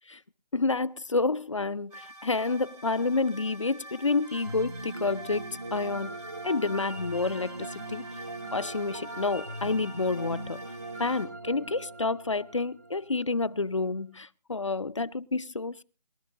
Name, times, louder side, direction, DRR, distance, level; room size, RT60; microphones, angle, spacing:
voice 1, 0.5-6.1 6.4-8.0 8.5-10.7 11.0-15.8, left 3 dB, 45° left, 0.6 m, -29 dB
sound 1, 1.9-11.3, right 1 dB, 65° right, 6.1 m, -47 dB
sound 2, 4.4-13.6, right 2 dB, 25° right, 0.8 m, -40 dB
23.0 x 12.0 x 2.5 m
figure-of-eight pair, 175°, 21 cm